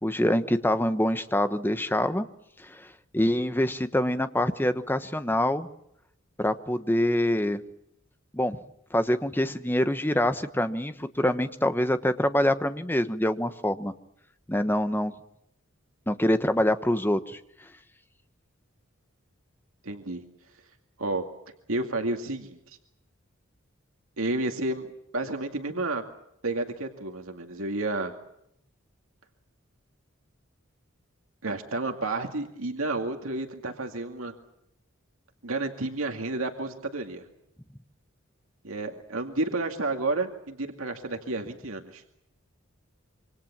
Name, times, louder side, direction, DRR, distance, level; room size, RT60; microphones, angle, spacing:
voice 1, 0.0-2.3 2.6-2.9 3.1-5.7 6.4-7.6 8.3-8.6 8.9-13.9 14.5-15.1 16.1-17.4, left 1 dB, 10° left, 10 dB, 1.1 m, -25 dB
voice 2, 19.8-20.2 21.0-21.2 21.7-22.8 24.2-26.0 26.4-28.1 31.4-34.3 35.4-37.3 38.6-42.0, right 2 dB, 80° right, 4 dB, 2.3 m, -31 dB
26.5 x 25.0 x 7.4 m, 0.77 s
head